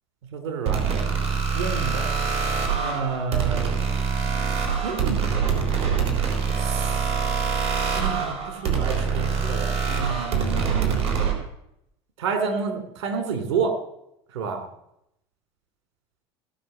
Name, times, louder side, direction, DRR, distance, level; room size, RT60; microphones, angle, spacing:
voice 1, 0.3-1.0 1.5-2.0 2.8-3.7 4.8-5.3 6.6-7.0 8.0-11.1 12.2-13.7 14.3-14.6, right 5 dB, 80° right, 6 dB, 2.6 m, -29 dB
sound 1, 0.7-11.3, right 6 dB, 50° right, 3.7 m, -24 dB
17.5 x 6.3 x 6.5 m, 0.79 s
hypercardioid pair, 85°, 14 cm